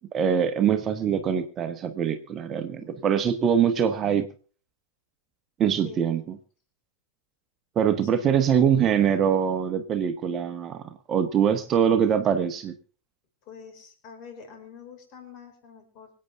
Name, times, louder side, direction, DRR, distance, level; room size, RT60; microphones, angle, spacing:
voice 1, 0.1-4.3 5.6-6.2 7.7-12.7, right 8 dB, 30° right, 7 dB, 1.3 m, -23 dB
voice 2, 5.8-6.3 8.1-8.6 13.4-16.1, left 6 dB, 40° left, 4 dB, 5.5 m, -46 dB
25.5 x 8.9 x 3.6 m, 0.41 s
figure-of-eight pair, 90°, 0 cm